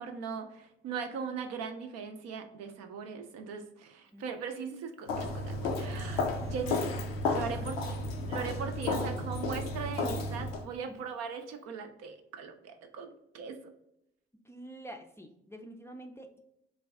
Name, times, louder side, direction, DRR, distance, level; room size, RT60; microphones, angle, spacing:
voice 1, 0.0-6.8 7.3-8.0 8.3-13.6, right 6 dB, 60° right, 5 dB, 0.5 m, -39 dB
Walk footsteps, 5.1-10.6, left 2 dB, 85° left, 0.5 m, -33 dB
voice 2, 14.4-16.4, right 1 dB, 10° left, 3 dB, 0.4 m, -47 dB
3.3 x 2.3 x 3.4 m, 0.81 s
figure-of-eight pair, 40°, 29 cm